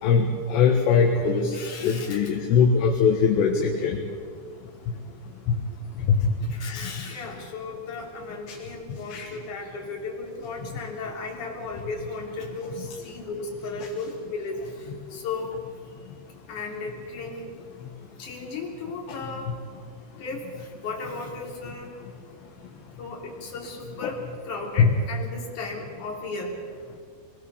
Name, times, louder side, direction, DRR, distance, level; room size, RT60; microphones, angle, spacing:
voice 1, 0.0-4.0 5.5-5.6 6.0-6.3 6.8-6.9 8.5-8.6 9.1-9.3 12.8-12.9 24.8-24.9, left 6 dB, 70° left, 1 dB, 3.5 m, -21 dB
voice 2, 1.3-2.3 6.5-15.5 16.5-17.5 18.2-19.5 20.2-21.9 23.0-26.6, left 3 dB, 45° left, -1 dB, 4.2 m, -35 dB
24.5 x 20.5 x 6.9 m, 2.1 s
omnidirectional pair, 5.5 m